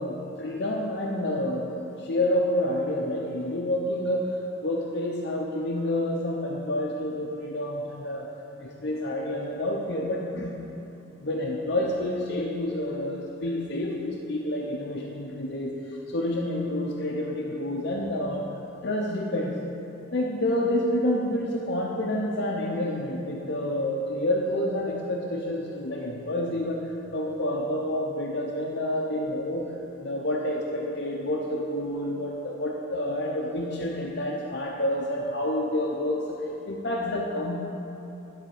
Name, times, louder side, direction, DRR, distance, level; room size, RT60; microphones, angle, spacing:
voice 1, 0.0-4.4 4.6-8.3 8.6-10.6 11.2-18.5 18.8-19.6 20.1-29.7 30.0-36.4 36.7-37.6, left 1 dB, 55° left, -1 dB, 0.7 m, -28 dB
10.5 x 5.0 x 7.1 m, 3.0 s
head